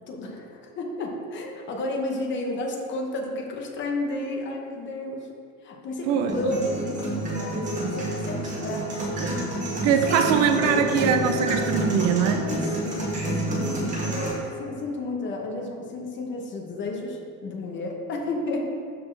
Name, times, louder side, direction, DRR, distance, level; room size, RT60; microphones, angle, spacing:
voice 1, 0.1-5.3 5.6-9.1 9.5-11.1 12.3-18.6, left 2 dB, 35° left, 0 dB, 0.9 m, -32 dB
voice 2, 6.1-6.4 9.2-9.3 9.8-12.5, right 8 dB, 50° right, 5 dB, 0.5 m, -22 dB
sound 1, 6.3-14.3, right 2 dB, 20° right, 1.5 m, -29 dB
Bass guitar, 10.6-14.5, left 8 dB, 75° left, 1.2 m, -36 dB
12.5 x 4.2 x 3.2 m, 2.4 s
cardioid pair, 175°, 34 cm